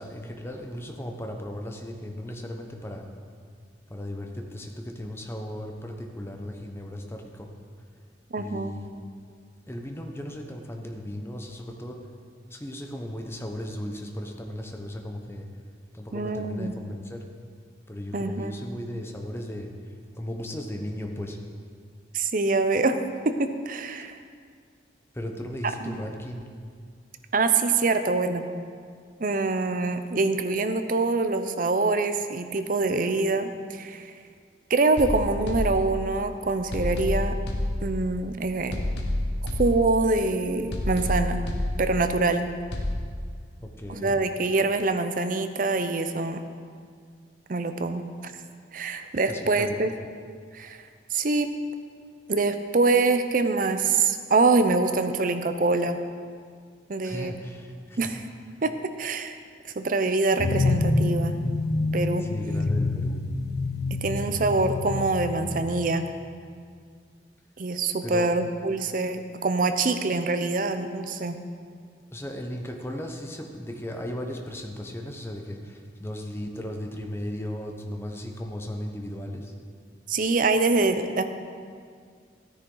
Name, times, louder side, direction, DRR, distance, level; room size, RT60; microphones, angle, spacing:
voice 1, 0.0-3.1 3.9-7.5 8.4-8.9 9.7-12.0 12.5-15.5 15.9-17.2 17.9-21.4 25.1-26.5 43.6-44.2 49.3-49.8 57.0-58.1 62.2-63.2 68.0-68.3 72.1-79.5, left 1 dB, 15° left, 3 dB, 0.8 m, -36 dB
voice 2, 8.3-8.7 16.1-16.7 18.1-18.5 22.1-23.0 23.2-24.2 25.8-26.0 27.3-28.5 29.2-34.1 34.7-37.3 37.8-38.8 39.6-41.4 41.8-42.5 43.9-46.4 47.5-48.3 48.7-49.9 50.5-50.8 51.1-51.5 52.3-56.0 56.9-57.3 58.0-58.2 58.6-58.7 59.0-59.4 59.8-61.3 61.9-62.3 63.9-66.0 67.6-71.4 80.1-81.2, right 3 dB, 45° right, 9 dB, 0.6 m, -25 dB
sound 1, 35.0-36.3 36.7-38.3 38.7-40.3 40.7-42.3 42.7-43.0, left 1 dB, 75° left, 1.4 m, -29 dB
sound 2, 60.4-65.6, left 2 dB, 60° left, 0.5 m, -27 dB
13.5 x 9.9 x 3.9 m, 2.1 s
head